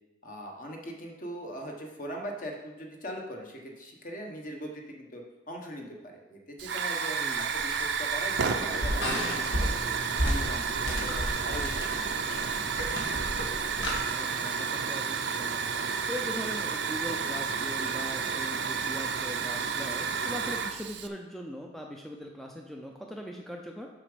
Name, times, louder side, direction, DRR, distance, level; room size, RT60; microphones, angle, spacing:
voice 1, 0.2-5.2 5.5-7.2 7.5-9.9 10.2-12.5, equal, 45° left, 1 dB, 1.3 m, -41 dB
Hiss / Fire, 6.6-21.1, right 5 dB, 70° right, 0.6 m, -31 dB
voice 2, 7.1-7.5 14.1-15.6 16.1-23.9, equal, ahead, 1 dB, 0.5 m, -40 dB
sound 1, 7.3-14.0, equal, 80° left, 1.9 m, -33 dB
7.3 x 6.1 x 5.1 m, 1.1 s
head